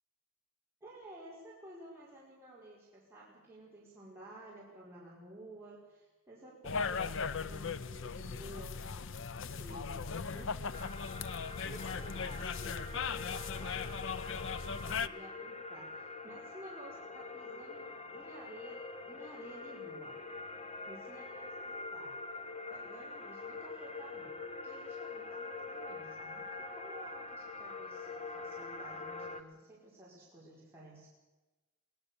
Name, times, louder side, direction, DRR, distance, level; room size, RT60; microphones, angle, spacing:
voice 1, 0.8-10.9 11.7-20.2 20.8-22.2 22.7-26.4 26.7-31.1, right 1 dB, 10° right, -7 dB, 4.8 m, -53 dB
sound 1, 6.6-15.1, left 5 dB, 65° left, 0.7 m, -38 dB
sound 2, 10.7-29.4, left 3 dB, 30° left, 1.2 m, -45 dB
22.0 x 18.5 x 7.0 m, 1.1 s
head